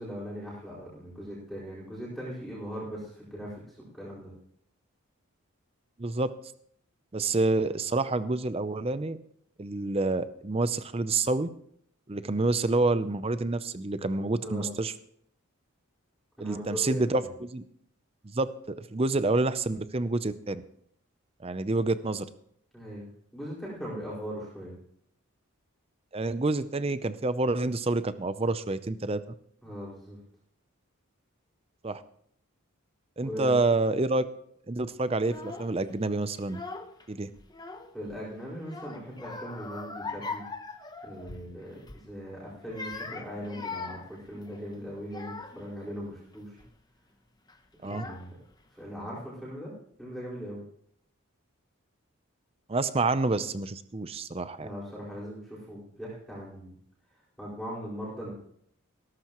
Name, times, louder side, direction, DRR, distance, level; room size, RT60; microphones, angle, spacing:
voice 1, 0.0-4.3 14.4-14.8 16.4-17.3 22.7-23.0 23.3-24.8 29.6-30.2 33.2-33.5 37.9-40.4 41.0-46.6 47.8-48.3 48.7-49.7 50.0-50.6 54.6-56.7 57.4-58.3, equal, ahead, -8 dB, 4.7 m, -39 dB
voice 2, 6.0-6.3 7.1-9.2 9.6-11.5 12.1-14.9 16.4-17.6 18.2-20.6 21.4-22.3 26.1-29.2 31.8-32.0 33.2-34.2 34.7-36.6 37.1-37.3 47.8-48.0 52.7-54.7, right 2 dB, 25° right, 13 dB, 0.6 m, -28 dB
Child speech kid speaking / Crying sobbing, 35.2-35.7 36.4-37.0 37.4-38.2 38.6-41.5 41.8-42.1 42.6-45.7 46.3-46.7 47.5-47.6 47.8-48.5, left 4 dB, 20° left, 0.8 m, -41 dB
16.5 x 14.0 x 3.0 m, 0.67 s
head